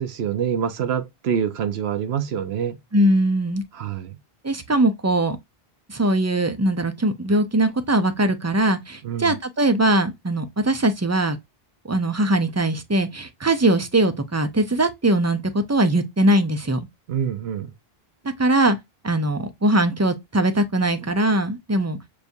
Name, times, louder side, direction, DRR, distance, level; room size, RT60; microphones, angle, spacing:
voice 1, 0.0-2.8 3.7-4.2 9.0-9.3 17.1-17.7, right 8 dB, 85° right, 1.0 m, -26 dB
voice 2, 2.9-3.6 4.4-5.4 5.9-11.4 11.8-16.8 18.4-18.8 19.0-22.0, right 1 dB, 25° right, 0.3 m, -21 dB
6.7 x 2.3 x 2.6 m
omnidirectional pair, 1.0 m